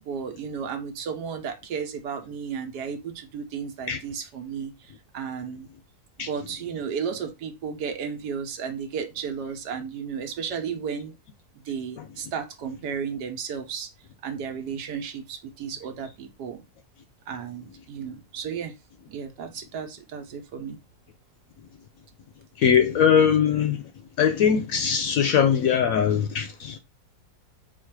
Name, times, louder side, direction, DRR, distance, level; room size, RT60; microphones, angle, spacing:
voice 1, 0.1-4.7 5.1-5.7 6.3-11.1 11.7-13.9 14.2-16.6 17.3-18.7 19.1-20.8, right 6 dB, 90° right, 1.4 m, -33 dB
voice 2, 22.6-23.8 24.2-26.8, left 8 dB, 70° left, 0.9 m, -21 dB
4.1 x 2.4 x 4.5 m
omnidirectional pair, 1.7 m